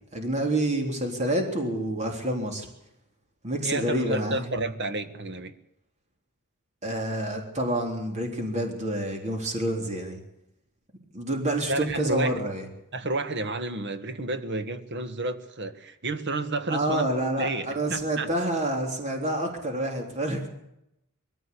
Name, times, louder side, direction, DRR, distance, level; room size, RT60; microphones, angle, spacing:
voice 1, 0.1-2.7 3.4-4.4 6.8-10.2 11.1-12.6 16.7-20.5, right 1 dB, 30° right, 3 dB, 3.6 m, -28 dB
voice 2, 3.6-5.5 11.7-12.4 12.9-17.1 17.4-18.3, right 2 dB, 55° right, 10 dB, 1.5 m, -31 dB
22.0 x 14.5 x 8.4 m, 0.83 s
head